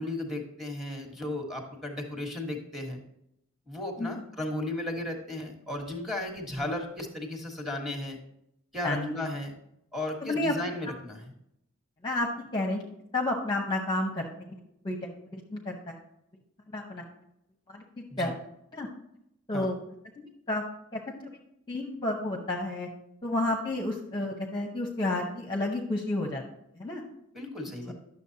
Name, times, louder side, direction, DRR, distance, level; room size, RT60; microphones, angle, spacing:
voice 1, 0.0-3.0 3.7-8.2 8.7-9.5 9.9-11.3 18.1-18.3 19.5-19.7 27.3-27.9, left 1 dB, ahead, 2 dB, 1.3 m, -35 dB
voice 2, 8.8-9.4 10.2-10.6 12.0-12.8 13.1-14.3 14.8-15.9 16.7-17.0 17.7-18.3 18.7-18.9 19.5-19.8 20.2-20.6 20.9-21.4 21.7-22.9 23.2-26.4 26.8-27.0 27.9-28.0, left 2 dB, 20° left, 0 dB, 0.8 m, -31 dB
11.0 x 7.0 x 2.8 m, 0.79 s
head